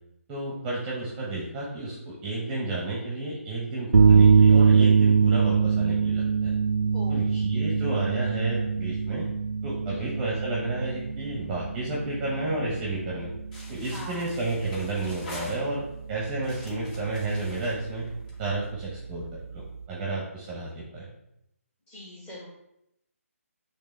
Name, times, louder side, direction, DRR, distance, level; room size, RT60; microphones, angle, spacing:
voice 1, 0.3-6.5 7.1-9.3 9.6-13.3 13.7-15.8 16.1-18.1 18.4-19.2 19.5-21.0, right 2 dB, 15° right, -4 dB, 1.1 m, -31 dB
sound 1, 3.9-19.9, right 5 dB, 70° right, 0.4 m, -24 dB
voice 2, 6.9-7.3 9.9-10.1 13.9-14.4 21.9-22.5, left 1 dB, 15° left, -5 dB, 1.8 m, -42 dB
sound 2, 13.5-16.0 16.4-18.6, left 1 dB, 35° left, 2.2 m, -44 dB
8.4 x 3.4 x 3.4 m, 0.82 s
figure-of-eight pair, 145°, 8 cm